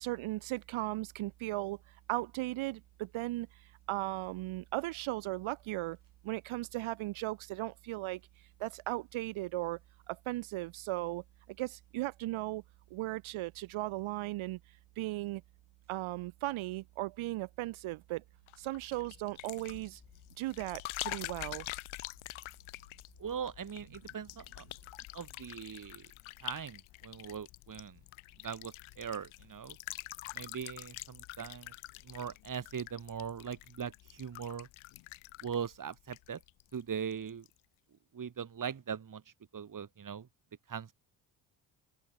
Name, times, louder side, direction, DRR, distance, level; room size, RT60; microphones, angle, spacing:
voice 1, 0.0-1.8 2.1-3.5 3.9-6.0 6.2-8.2 8.6-9.8 10.1-12.6 12.9-14.6 15.0-15.4 15.9-18.2 18.6-20.0 20.4-21.7, right 18 dB, 80° right, 4.6 m, -37 dB
sound 1, 18.5-36.8 37.1-37.5, left 18 dB, 80° left, 2.9 m, -46 dB
voice 2, 23.2-24.6 25.1-26.1 26.4-28.0 28.4-29.8 30.3-31.7 32.0-34.7 35.4-36.4 36.7-37.4 38.1-39.2 39.5-40.3 40.7-40.9, right 7 dB, 40° right, 2.8 m, -40 dB
open air
supercardioid pair, 65°, 48 cm